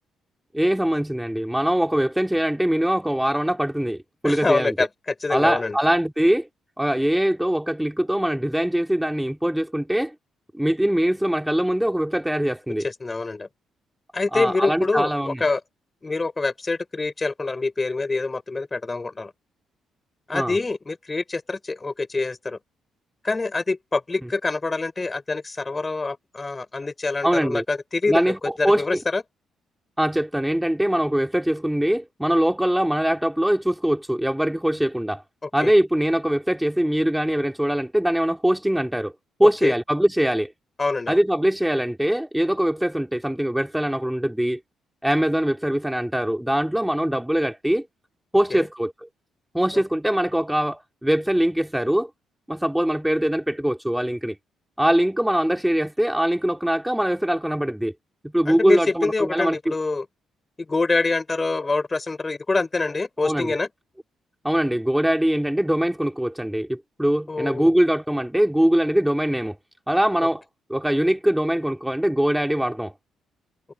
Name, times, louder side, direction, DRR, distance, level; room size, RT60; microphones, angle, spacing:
voice 1, 0.5-4.7 5.3-6.5 6.8-10.1 10.5-12.9 14.3-15.4 20.3-20.6 27.2-27.6 28.1-29.0 30.0-35.2 35.5-39.1 39.4-40.5 41.1-44.6 45.0-47.9 48.3-49.1 49.5-52.1 52.5-54.4 54.8-57.9 58.2-59.7 63.2-63.6 64.4-69.6 69.9-70.4 70.7-72.9, right 1 dB, 5° right, 2.3 m, -22 dB
voice 2, 4.2-5.8 12.8-13.5 14.1-15.6 16.0-19.3 20.3-22.6 23.2-29.2 35.4-35.7 39.4-39.7 40.8-41.2 48.5-48.7 49.7-49.8 58.5-60.1 60.6-63.7 67.3-67.7 70.2-70.3, left 3 dB, 25° left, 3.9 m, -25 dB
cardioid pair, 90°, 0 cm